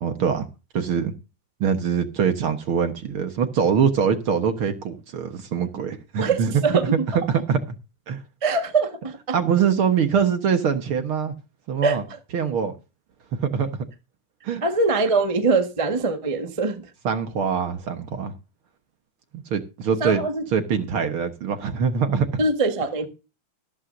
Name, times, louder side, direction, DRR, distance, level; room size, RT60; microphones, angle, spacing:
voice 1, 0.0-0.5 0.7-1.1 1.6-7.6 8.1-8.2 9.3-11.3 11.7-12.0 12.3-12.8 13.3-13.9 14.4-14.6 17.0-18.3 19.3-20.2 20.5-22.3, right 7 dB, 55° right, 1.7 m, -23 dB
voice 2, 6.2-7.0 8.4-9.4 11.8-12.0 14.6-16.9 20.0-20.4 22.4-23.1, right 3 dB, 30° right, 0.6 m, -23 dB
14.5 x 14.0 x 2.7 m
omnidirectional pair, 3.6 m